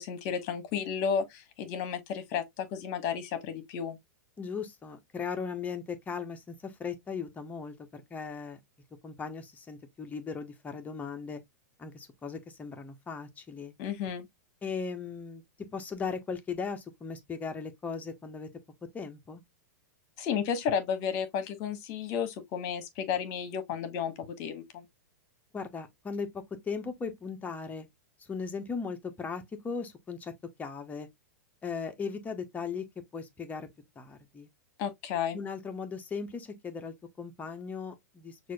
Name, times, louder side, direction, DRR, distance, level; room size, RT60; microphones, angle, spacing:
voice 1, 0.0-4.0 13.8-14.3 20.2-24.9 34.8-35.4, left 7 dB, 45° left, 1.1 m, -32 dB
voice 2, 4.4-8.6 9.0-11.4 11.8-13.7 14.6-15.4 15.7-18.5 18.9-19.4 25.5-27.9 28.2-30.3 30.6-31.1 31.6-32.8 33.1-33.7 34.0-34.5 35.3-38.5, left 5 dB, 15° left, 0.9 m, -38 dB
6.0 x 2.5 x 2.2 m
hypercardioid pair, 120°, 9 cm